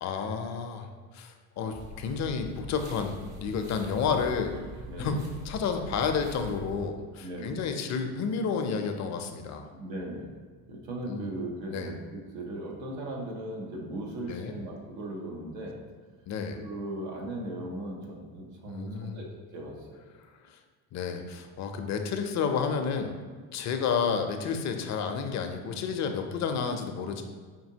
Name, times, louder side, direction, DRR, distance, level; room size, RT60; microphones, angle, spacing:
voice 1, 0.0-4.6 5.0-5.2 5.4-9.7 11.1-11.3 11.7-11.9 14.3-14.5 16.3-16.6 18.7-19.2 20.9-23.1 23.5-27.2, left 6 dB, 45° left, 6 dB, 0.5 m, -31 dB
sound 1, 1.7-6.9, equal, 40° right, 0.7 m, -44 dB
voice 2, 4.9-5.2 7.2-7.6 9.7-10.4 10.7-15.8 16.5-20.0, right 1 dB, 90° right, 0 dB, 0.9 m, -38 dB
5.1 x 2.7 x 2.7 m, 1.5 s
supercardioid pair, 95°, 40 cm